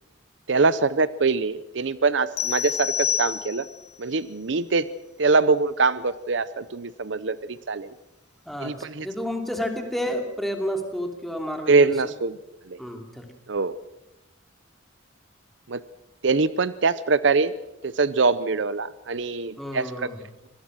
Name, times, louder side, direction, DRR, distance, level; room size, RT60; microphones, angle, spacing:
voice 1, 0.5-3.7 4.0-4.9 5.2-7.9 8.6-9.1 11.7-12.4 12.7-12.8 13.5-13.8 15.7-15.8 16.2-17.5 17.8-19.9, right 4 dB, 65° right, 16 dB, 0.7 m, -23 dB
sound 1, 2.4-3.9, left 9 dB, 35° left, 0.7 m, -28 dB
voice 2, 8.4-11.9 12.8-13.3 19.6-20.2, equal, ahead, 3 dB, 2.8 m, -30 dB
25.0 x 19.0 x 6.4 m, 0.95 s
head